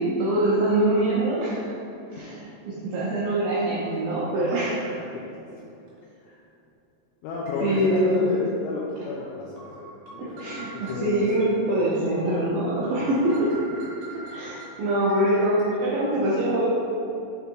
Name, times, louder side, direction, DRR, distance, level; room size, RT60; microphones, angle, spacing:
voice 1, 0.0-1.7 2.2-5.0 7.6-8.3 10.2-13.4 14.3-16.6, right 1 dB, 80° right, -8 dB, 2.1 m, -24 dB
sound 1, 3.9-4.1 4.5-4.7 5.9-6.0 7.5-8.5 9.0-9.1 9.6-11.5 11.9-12.0 12.4-12.5 12.8-15.6, right 2 dB, 60° right, 2.9 m, -44 dB
voice 2, 7.2-11.4 13.0-13.1, left 3 dB, 80° left, -4 dB, 2.7 m, -32 dB
7.2 x 3.5 x 4.5 m, 2.8 s
omnidirectional pair, 5.3 m